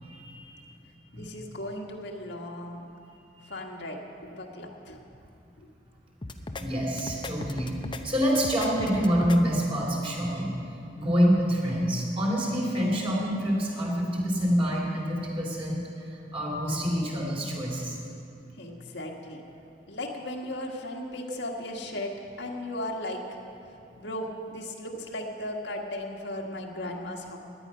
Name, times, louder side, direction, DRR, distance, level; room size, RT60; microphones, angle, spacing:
voice 1, 0.0-0.6 1.1-1.3 3.3-3.5 6.6-7.7 8.0-10.5 10.9-18.0 21.3-21.4, equal, 30° right, -3 dB, 3.1 m, -27 dB
voice 2, 1.1-2.9 3.5-5.0 5.6-5.7 18.6-19.4 19.9-22.1 22.4-23.4 24.0-27.4, left 1 dB, 70° left, 0 dB, 1.6 m, -36 dB
sound 1, 6.2-6.6 7.0-8.0 8.4-9.4, left 2 dB, 25° left, 0.6 m, -37 dB
17.0 x 11.0 x 5.6 m, 2.6 s
head